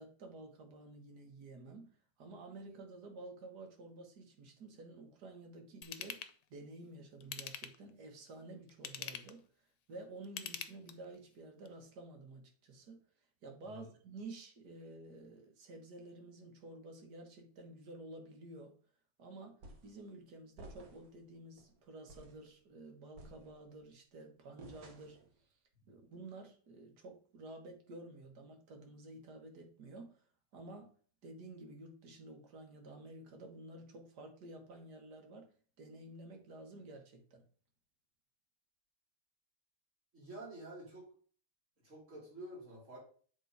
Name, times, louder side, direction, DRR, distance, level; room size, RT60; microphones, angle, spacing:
voice 1, 0.0-6.2 6.5-9.4 9.9-13.0 13.4-18.8 19.2-19.6 19.8-25.2 25.9-30.2 30.5-30.9 31.2-35.5 35.8-37.4, right 2 dB, 80° right, 3 dB, 1.9 m, -51 dB
Ratchet pawl / Tools, 5.8-6.3 7.2-7.9 8.7-9.4 10.2-11.1 11.6-11.7, left 9 dB, 75° left, 1.1 m, -44 dB
sound 1, 19.6-20.0 20.6-21.2 21.6-21.7 22.1-22.4 23.2-23.8 24.6-25.3, right 2 dB, 65° right, 1.6 m, -54 dB
voice 2, 40.1-41.0 41.8-43.0, right 1 dB, 50° right, -3 dB, 3.1 m, -49 dB
7.6 x 3.8 x 4.6 m, 0.44 s
omnidirectional pair, 1.7 m